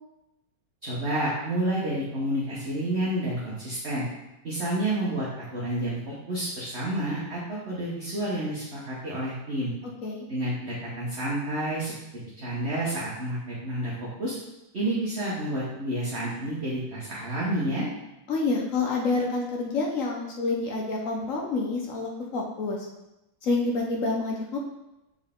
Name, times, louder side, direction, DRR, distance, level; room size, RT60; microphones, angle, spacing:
voice 1, 0.8-4.1 4.4-9.7 10.3-11.9 12.4-14.3 14.7-17.9, right 1 dB, 40° right, -6 dB, 1.1 m, -29 dB
voice 2, 18.3-22.9 23.4-24.6, left 3 dB, 65° left, 0 dB, 0.8 m, -28 dB
6.6 x 4.4 x 3.7 m, 0.93 s
omnidirectional pair, 2.3 m